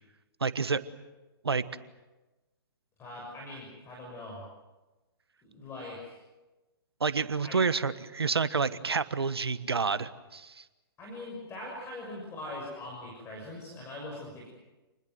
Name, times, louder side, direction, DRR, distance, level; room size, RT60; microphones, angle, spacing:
voice 1, 0.4-0.8 1.4-1.6 7.0-10.6, right 5 dB, 90° right, 14 dB, 1.3 m, -29 dB
voice 2, 3.0-4.4 5.4-6.2 7.4-7.6 11.0-14.5, left 1 dB, 20° left, -2 dB, 6.8 m, -42 dB
28.5 x 20.5 x 7.9 m, 1.1 s
hypercardioid pair, 130°, 13 cm